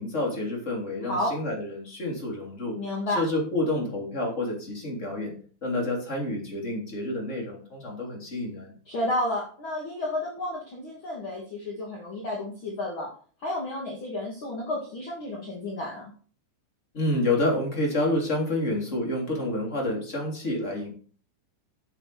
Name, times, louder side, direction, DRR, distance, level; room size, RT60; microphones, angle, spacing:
voice 1, 0.0-2.8 3.1-5.3 5.6-8.7 16.9-20.9, left 1 dB, 20° left, -1 dB, 2.8 m, -28 dB
voice 2, 1.0-1.3 2.8-3.2 8.9-13.1 13.4-16.1, left 1 dB, 45° left, -2 dB, 1.8 m, -31 dB
9.9 x 7.7 x 4.9 m, 0.43 s
omnidirectional pair, 5.4 m